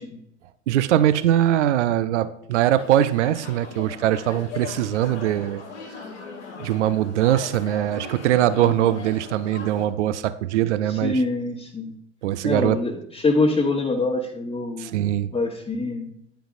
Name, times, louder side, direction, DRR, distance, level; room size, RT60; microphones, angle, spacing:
voice 1, 0.7-5.6 6.6-11.2 12.2-12.8 14.8-15.3, right 12 dB, 75° right, 15 dB, 0.5 m, -22 dB
sound 1, 2.8-9.9, left 5 dB, 80° left, 1.7 m, -39 dB
voice 2, 10.9-11.9 12.4-14.9 15.3-16.1, left 3 dB, 15° left, 0 dB, 1.0 m, -24 dB
10.0 x 9.4 x 2.5 m, 0.75 s
figure-of-eight pair, 70°, 35 cm